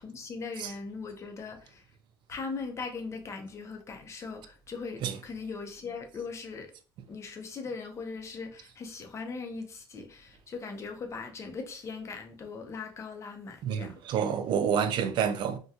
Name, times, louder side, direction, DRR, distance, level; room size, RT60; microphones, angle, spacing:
voice 1, 0.0-1.8 2.3-6.7 7.1-14.0, left 4 dB, 35° left, 0.6 m, -39 dB
voice 2, 13.6-15.6, right 8 dB, 65° right, 0.4 m, -28 dB
3.5 x 2.2 x 2.7 m
cardioid pair, 135°, 9 cm